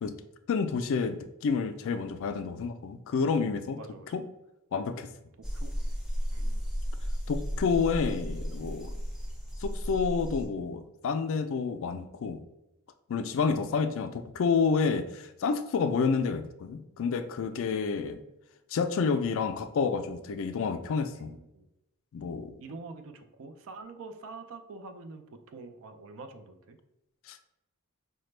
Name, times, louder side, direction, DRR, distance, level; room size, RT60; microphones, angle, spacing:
voice 1, 0.5-3.8 4.1-4.2 4.7-5.1 7.3-8.9 9.6-12.4 13.1-18.2 18.7-21.3 22.1-22.5 27.3-27.4, left 5 dB, 60° left, 10 dB, 0.3 m, -29 dB
voice 2, 3.7-4.1 5.4-5.7 6.3-6.7 21.1-21.7 22.6-26.8, right 3 dB, 60° right, 8 dB, 0.4 m, -46 dB
sound 1, 5.4-10.5, equal, 5° right, 0.7 m, -34 dB
4.9 x 2.1 x 3.2 m, 0.92 s
head